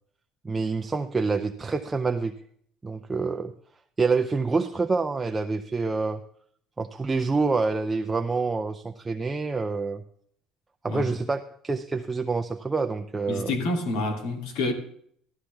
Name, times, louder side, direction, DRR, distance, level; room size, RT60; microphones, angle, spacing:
voice 1, 0.4-2.3 2.8-3.5 4.0-6.2 6.8-10.0 10.8-13.5, right 4 dB, 10° right, 0.5 m, -27 dB
voice 2, 13.3-14.7, left 2 dB, 90° left, 2.7 m, -28 dB
15.0 x 13.0 x 3.4 m
cardioid pair, 175°, 0 cm